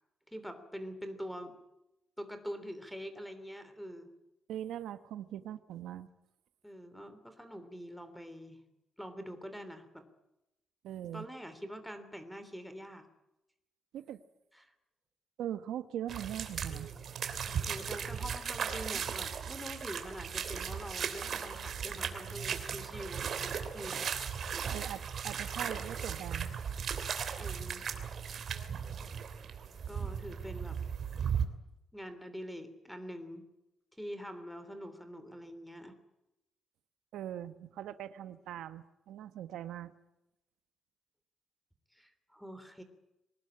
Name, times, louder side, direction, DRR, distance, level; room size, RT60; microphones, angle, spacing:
voice 1, 0.3-1.6 2.2-4.1 6.6-8.6 9.0-10.1 11.1-13.1 14.5-14.7 17.7-24.0 27.4-27.9 29.9-30.8 31.9-33.4 34.0-35.9 41.9-42.8, equal, ahead, 10 dB, 3.2 m, -45 dB
voice 2, 4.5-6.1 10.8-11.2 13.9-14.2 15.4-16.9 24.7-26.5 37.1-39.9, right 11 dB, 85° right, 11 dB, 1.3 m, -41 dB
sound 1, 16.1-31.5, right 7 dB, 45° right, 3.0 m, -37 dB
24.0 x 19.5 x 8.9 m, 0.89 s
cardioid pair, 155°, 0 cm